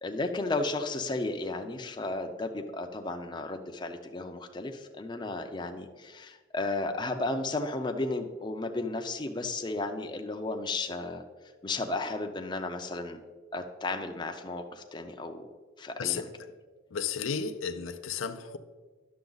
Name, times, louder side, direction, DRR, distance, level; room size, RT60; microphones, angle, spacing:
voice 1, 0.0-11.2 11.6-13.2 13.5-15.4 15.8-16.3, left 2 dB, 20° left, 0.5 m, -34 dB
voice 2, 16.9-18.6, left 6 dB, 85° left, 0.5 m, -33 dB
10.5 x 6.9 x 3.9 m
head